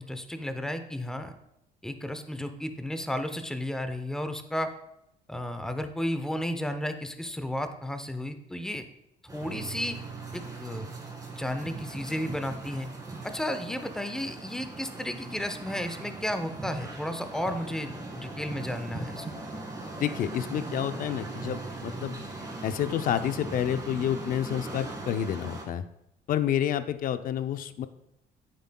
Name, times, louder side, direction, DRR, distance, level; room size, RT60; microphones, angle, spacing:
voice 1, 0.0-1.3 1.8-4.7 5.3-8.8 9.3-10.0 10.3-10.9 11.3-12.9 13.2-19.3, left 1 dB, 5° left, 8 dB, 0.7 m, -33 dB
sound 1, 9.3-25.6, right 2 dB, 20° right, 2.1 m, -40 dB
sound 2, 9.4-18.4, right 6 dB, 70° right, 2.7 m, -47 dB
voice 2, 20.0-22.1 22.6-25.8 26.3-27.9, left 10 dB, 55° left, 11 dB, 0.6 m, -29 dB
9.3 x 7.6 x 2.3 m, 0.82 s
cardioid pair, 110°, 17 cm